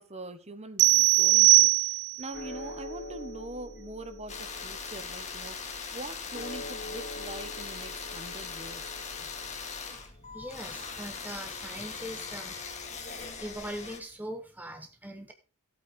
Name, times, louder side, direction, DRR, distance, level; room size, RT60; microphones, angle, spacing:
voice 1, 0.0-8.9, right 2 dB, 30° right, 1.3 m, -43 dB
sound 1, 0.8-2.3, right 21 dB, 50° right, 0.5 m, -20 dB
sound 2, 2.3-12.8, left 1 dB, 50° left, 1.0 m, -46 dB
sound 3, 4.3-14.0, left 5 dB, 30° left, 2.0 m, -40 dB
voice 2, 10.0-12.6 13.4-15.3, right 1 dB, 10° right, 0.9 m, -41 dB
15.0 x 8.5 x 3.6 m
head